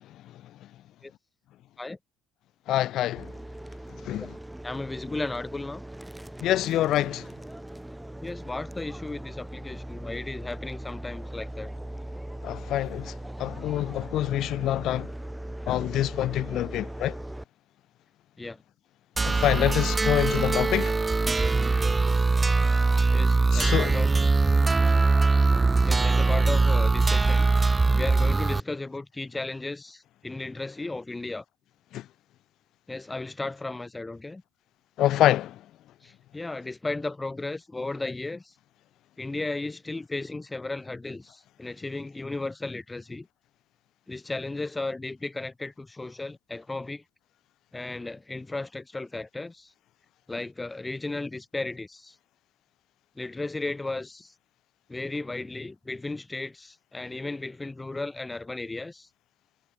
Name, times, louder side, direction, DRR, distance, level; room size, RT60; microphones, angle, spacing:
voice 1, 2.7-3.3 4.1-4.3 6.4-7.2 12.4-13.1 13.4-15.1 15.7-17.1 19.2-20.9 23.5-23.9 31.9-32.0 35.0-35.6, left 13 dB, 65° left, 0.3 m, -26 dB
sound 1, 3.2-17.4, right 1 dB, 5° right, 2.1 m, -40 dB
voice 2, 4.6-5.8 8.2-11.7 18.4-18.6 23.1-24.1 25.9-31.4 32.9-34.4 36.0-38.5 39.2-43.3 44.1-47.0 47.7-49.7 50.3-52.1 53.2-54.3 54.9-59.1, left 2 dB, 20° left, 0.7 m, -35 dB
sound 2, 19.2-28.6, right 3 dB, 25° right, 0.3 m, -22 dB
Shatter, 22.1-24.8 25.1-25.2 25.4-25.8 26.1-26.2, right 6 dB, 45° right, 7.2 m, -57 dB
hypercardioid pair, 65°, 0 cm